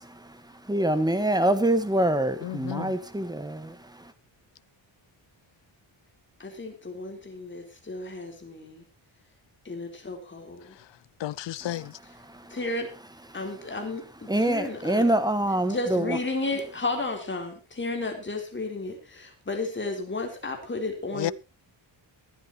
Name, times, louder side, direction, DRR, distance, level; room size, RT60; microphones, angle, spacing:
voice 1, 0.7-3.7 14.3-16.2, right 1 dB, 10° right, 1.4 m, -25 dB
voice 2, 2.4-2.9 11.2-11.9 21.2-21.3, left 13 dB, 65° left, 0.7 m, -32 dB
voice 3, 6.4-8.8 9.7-10.7 12.5-12.9 13.3-15.1 15.7-21.3, left 2 dB, 25° left, 3.8 m, -33 dB
20.5 x 12.0 x 3.0 m
wide cardioid pair, 155°, 47 cm